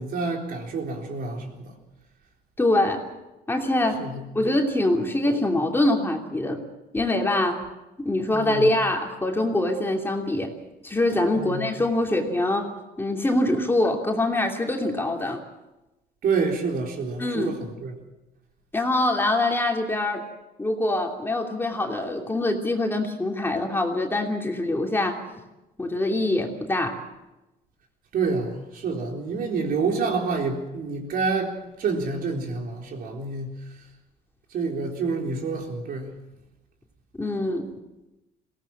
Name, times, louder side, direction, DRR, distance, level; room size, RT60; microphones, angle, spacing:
voice 1, 0.0-1.7 4.0-4.3 8.3-8.7 11.3-11.7 16.2-18.0 28.1-33.8 34.5-36.1, right 4 dB, 60° right, 4.0 m, -28 dB
voice 2, 2.6-3.0 3.5-4.0 4.3-6.6 6.9-7.6 8.0-10.5 10.8-12.7 13.0-15.4 17.2-17.5 18.7-20.2 20.6-25.2 25.8-27.0 37.2-37.7, left 1 dB, 15° left, 2.9 m, -24 dB
22.0 x 18.0 x 7.5 m
cardioid pair, 110°, 17 cm